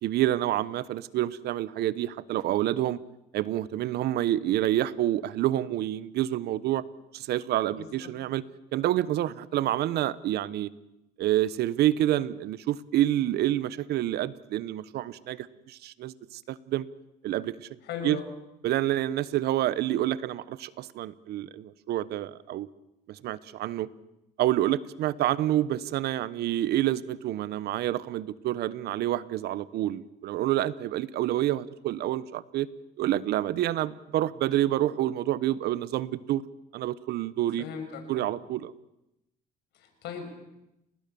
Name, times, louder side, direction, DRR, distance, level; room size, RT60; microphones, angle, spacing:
voice 1, 0.0-3.0 3.3-6.8 7.1-8.4 8.7-10.7 11.2-16.9 17.2-17.7 18.0-18.2 18.6-22.7 23.1-23.9 24.4-32.7 33.0-36.4 36.7-37.6 38.1-38.7, right 13 dB, 75° right, 17 dB, 1.1 m, -28 dB
voice 2, 7.7-8.1 17.8-18.3 37.6-38.3 39.7-40.3, left 6 dB, 80° left, 6 dB, 6.5 m, -38 dB
29.5 x 20.0 x 7.0 m, 0.88 s
cardioid pair, 110°, 17 cm